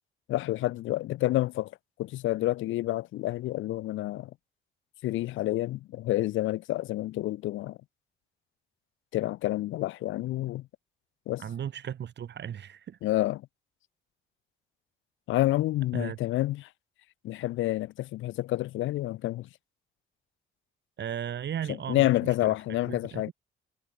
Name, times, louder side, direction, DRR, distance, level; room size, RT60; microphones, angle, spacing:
voice 1, 0.3-1.7 2.0-4.3 5.0-7.8 9.1-10.7 11.3-11.4 13.0-13.5 15.3-16.7 17.2-19.5 21.9-23.3, left 16 dB, 80° left, 0.6 m, -28 dB
voice 2, 11.4-13.0 15.9-16.2 21.0-22.5 22.9-23.3, right 9 dB, 60° right, 5.8 m, -36 dB
cardioid pair, 90°, 20 cm